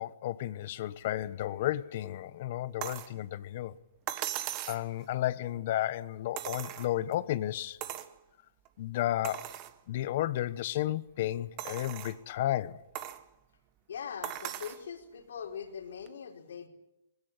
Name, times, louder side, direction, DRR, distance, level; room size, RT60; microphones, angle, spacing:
voice 1, 0.0-3.7 4.3-4.4 4.7-7.8 8.8-9.5 9.9-12.8, left 13 dB, 50° left, 1.1 m, -33 dB
sound 1, 2.8-3.1 4.1-4.9 6.4-7.2 7.8-8.1 8.7-8.8 9.2-9.7 10.4-10.5 11.6-12.2 13.0-13.2 14.2-14.8 16.1-16.2, right 13 dB, 30° right, 1.5 m, -38 dB
voice 2, 13.9-16.7, left 7 dB, 75° left, 4.5 m, -41 dB
20.5 x 17.5 x 10.0 m
hypercardioid pair, 150°, 0 cm